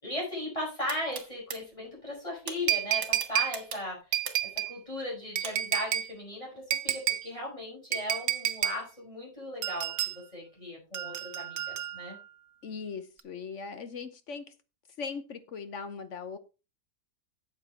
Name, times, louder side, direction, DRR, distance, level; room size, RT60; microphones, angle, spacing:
voice 1, 0.0-4.0 4.4-12.2, left 1 dB, 20° left, -3 dB, 6.1 m, -37 dB
sound 1, 0.9-1.6 2.5-2.6 3.0-4.6 5.4-5.5, right 5 dB, 85° right, 2.3 m, -38 dB
sound 2, 2.7-3.6 4.1-4.7 5.4-6.1 6.7-7.3 7.9-8.8 9.6-10.2 10.9-12.2 13.2-13.3, right 11 dB, 70° right, 1.2 m, -30 dB
voice 2, 12.6-14.5 15.0-16.4, left 5 dB, 55° left, 12 dB, 1.1 m, -39 dB
8.7 x 8.0 x 4.4 m, 0.30 s
omnidirectional pair, 1.7 m